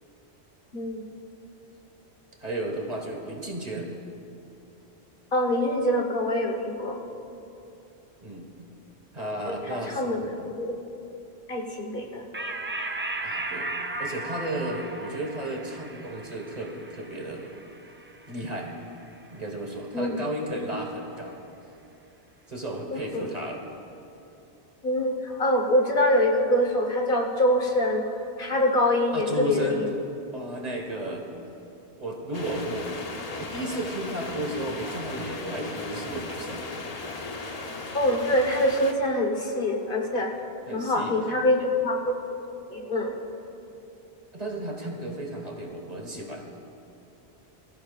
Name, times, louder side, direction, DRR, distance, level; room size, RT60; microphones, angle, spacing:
voice 1, 0.7-1.0 5.3-7.0 9.5-10.7 11.5-12.3 19.9-20.2 22.9-23.3 24.8-29.8 37.9-40.3 40.7-42.2 42.7-43.2, left 1 dB, 55° left, 1 dB, 1.4 m, -25 dB
voice 2, 2.4-3.9 8.2-8.5 9.1-10.1 13.2-13.7 14.0-17.6 18.3-18.7 19.3-21.4 22.5-23.6 29.1-30.0 30.3-31.3 32.0-32.9 33.4-36.7 40.7-41.2 44.3-46.4, right 1 dB, 40° right, 1 dB, 1.6 m, -33 dB
sound 1, 12.3-19.2, right 2 dB, 20° right, 0.4 m, -36 dB
sound 2, 32.3-38.9, left 3 dB, 40° left, 0.9 m, -36 dB
23.0 x 14.5 x 2.4 m, 2.8 s
omnidirectional pair, 1.1 m